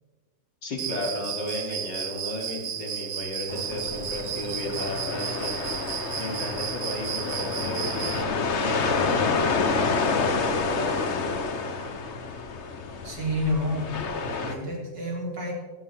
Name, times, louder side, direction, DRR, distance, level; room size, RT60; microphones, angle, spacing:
voice 1, 0.6-5.5 6.2-11.4, left 1 dB, 85° left, -1 dB, 3.7 m, -34 dB
Cricket, 0.8-8.2, right 9 dB, 55° right, 0.9 m, -34 dB
sound 1, 3.5-14.5, left 4 dB, 45° left, 1.2 m, -28 dB
voice 2, 13.0-15.5, left 1 dB, 75° right, -3 dB, 4.4 m, -30 dB
16.0 x 15.5 x 3.6 m, 1.4 s
omnidirectional pair, 1.9 m